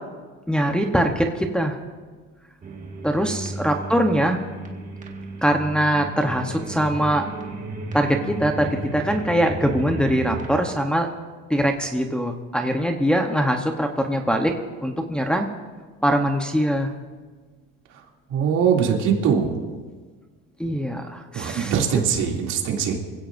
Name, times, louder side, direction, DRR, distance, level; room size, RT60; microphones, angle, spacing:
voice 1, 0.5-1.8 3.0-4.4 5.4-7.2 7.9-11.1 11.5-15.5 16.0-16.9 20.6-21.7, equal, 5° left, 2 dB, 0.9 m, -22 dB
sound 1, 2.6-10.6, right 3 dB, 25° right, 1.8 m, -34 dB
voice 2, 18.3-19.5 21.3-23.0, right 7 dB, 65° right, 0 dB, 2.8 m, -21 dB
25.5 x 16.5 x 2.6 m, 1.4 s
cardioid pair, 135°, 30 cm